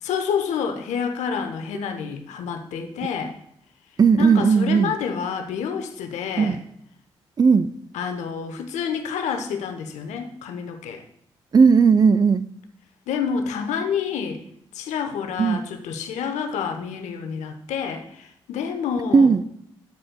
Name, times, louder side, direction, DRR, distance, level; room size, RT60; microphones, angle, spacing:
voice 1, 0.0-3.4 4.2-6.6 7.9-11.0 13.1-14.4 14.7-19.3, left 6 dB, 70° left, 5 dB, 0.9 m, -28 dB
voice 2, 4.0-4.9 6.4-6.6 7.4-7.7 11.5-12.5 15.4-15.6 19.1-19.4, right 5 dB, 30° right, 16 dB, 0.4 m, -16 dB
11.5 x 7.6 x 2.3 m, 0.70 s
hypercardioid pair, 40°, 12 cm